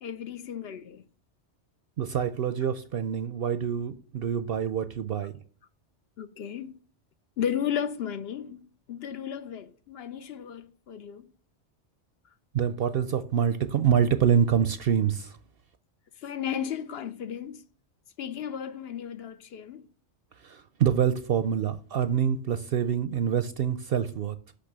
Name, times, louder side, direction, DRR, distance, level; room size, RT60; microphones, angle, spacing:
voice 1, 0.0-1.0 6.2-6.8 7.4-11.3 16.2-17.6 18.2-19.9, left 9 dB, 65° left, 0.9 m, -34 dB
voice 2, 2.0-5.4 12.5-15.4 20.4-24.5, right 8 dB, 65° right, 0.7 m, -26 dB
6.3 x 5.8 x 6.6 m
omnidirectional pair, 1.2 m